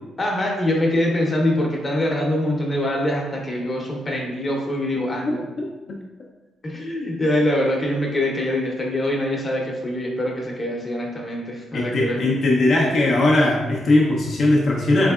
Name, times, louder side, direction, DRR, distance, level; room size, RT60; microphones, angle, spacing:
voice 1, 0.2-5.4 6.6-12.2, left 1 dB, 30° left, -1 dB, 0.8 m, -24 dB
voice 2, 5.0-5.3 5.9-6.0 11.7-15.1, left 2 dB, 55° left, -3 dB, 0.6 m, -19 dB
3.6 x 3.2 x 2.4 m, 1.2 s
cardioid pair, 90°, 0 cm